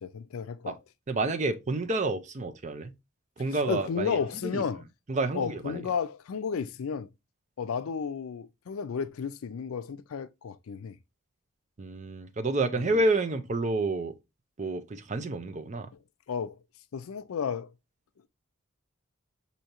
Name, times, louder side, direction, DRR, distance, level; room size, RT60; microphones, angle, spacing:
voice 1, 0.0-0.7 3.7-4.8 5.3-7.1 7.6-11.0 12.7-13.0 16.3-16.6 16.9-17.7, left 6 dB, 85° left, 0.4 m, -33 dB
voice 2, 1.1-2.9 3.4-4.6 5.1-5.8 11.8-14.2 14.6-15.9, right 2 dB, 35° right, 0.5 m, -29 dB
6.5 x 2.7 x 2.8 m
head